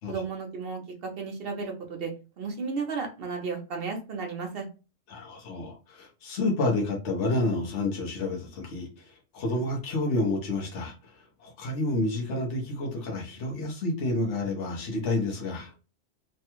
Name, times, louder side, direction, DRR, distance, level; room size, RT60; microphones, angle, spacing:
voice 1, 0.1-4.6, right 4 dB, 55° right, 3 dB, 0.9 m, -34 dB
voice 2, 5.1-15.7, left 2 dB, 65° left, 0 dB, 1.2 m, -29 dB
3.3 x 2.2 x 2.9 m, 0.32 s
omnidirectional pair, 1.3 m